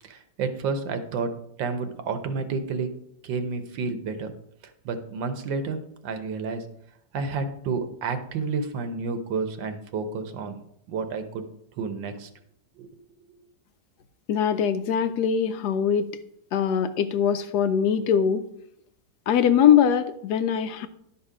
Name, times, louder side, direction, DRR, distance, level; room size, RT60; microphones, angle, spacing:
voice 1, 0.0-1.3 1.6-2.9 3.2-4.3 4.8-6.6 7.1-10.6 10.9-11.5 11.8-12.3 12.8-12.9, right 4 dB, 85° right, 8 dB, 1.7 m, -30 dB
voice 2, 14.3-16.1 16.5-18.4 19.3-20.9, left 8 dB, 70° left, 10 dB, 1.0 m, -22 dB
11.5 x 5.6 x 5.0 m, 0.73 s
omnidirectional pair, 2.0 m